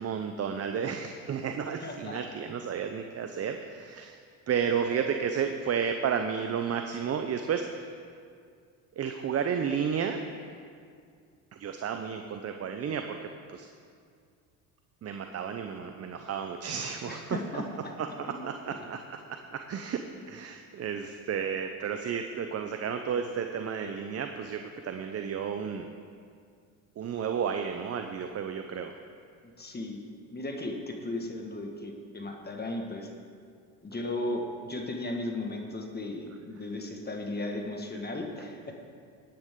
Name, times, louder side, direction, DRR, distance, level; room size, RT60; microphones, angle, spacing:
voice 1, 0.0-4.2 4.5-7.9 9.0-10.2 11.6-13.2 13.5-13.7 15.0-17.6 18.0-19.0 19.5-20.0 20.3-25.9 27.0-28.9, right 7 dB, 35° right, 6 dB, 0.8 m, -32 dB
voice 2, 1.8-2.2 17.1-17.9 18.3-18.9 29.4-30.0 30.3-33.1 33.8-38.7, left 2 dB, 25° left, 2 dB, 1.7 m, -36 dB
16.5 x 9.4 x 3.8 m, 2.2 s
supercardioid pair, 80°, 41 cm